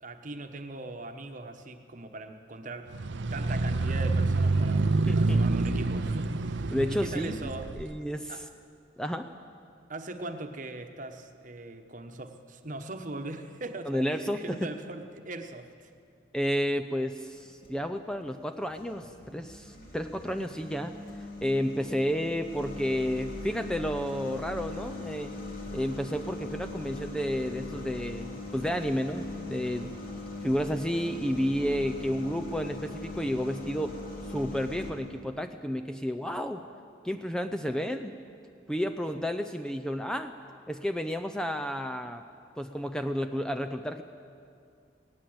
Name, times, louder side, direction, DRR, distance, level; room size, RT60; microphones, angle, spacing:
voice 1, 0.0-7.7 8.3-8.4 9.9-15.9 39.1-39.2, right 2 dB, 45° right, 6 dB, 1.2 m, -40 dB
sound 1, 2.9-7.9, right 3 dB, 70° right, 0.6 m, -27 dB
voice 2, 5.1-5.4 6.7-8.4 9.0-9.3 13.9-14.6 16.3-21.0 21.4-25.3 25.7-29.9 30.4-33.9 34.3-36.6 37.0-38.1 38.7-40.3 40.7-42.2 42.6-44.0, equal, 5° left, 7 dB, 0.5 m, -31 dB
sound 2, 17.1-17.8 18.3-34.9, left 3 dB, 50° left, 3.0 m, -41 dB
19.0 x 18.0 x 7.9 m, 2.3 s
head